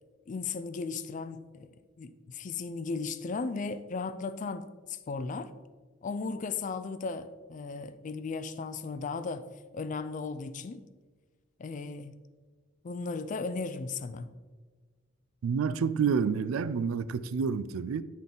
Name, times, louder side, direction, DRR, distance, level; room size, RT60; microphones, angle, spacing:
voice 1, 0.3-1.7 2.0-5.5 6.0-9.4 9.7-10.8 11.6-12.1 12.8-14.3, left 4 dB, 40° left, 0.3 m, -36 dB
voice 2, 15.4-18.0, right 6 dB, 80° right, 0.3 m, -28 dB
10.0 x 3.6 x 3.9 m
head